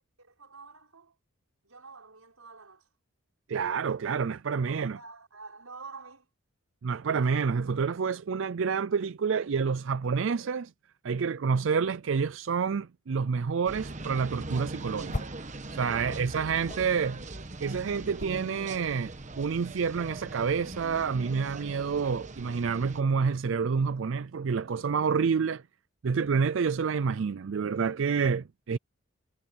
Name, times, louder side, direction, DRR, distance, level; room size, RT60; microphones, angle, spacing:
voice 1, 0.2-1.2 1.6-2.9 4.6-6.3 15.7-16.2 16.7-17.0, right 4 dB, 85° right, 6.0 m, -48 dB
voice 2, 3.5-5.0 6.8-10.7 11.0-15.3 15.7-17.2 17.6-25.6 26.0-28.8, right 5 dB, 65° right, 0.4 m, -28 dB
sound 1, 13.7-23.0, right 2 dB, 35° right, 1.1 m, -41 dB
sound 2, 14.0-15.6 15.8-19.6, left 2 dB, 35° left, 0.9 m, -42 dB
head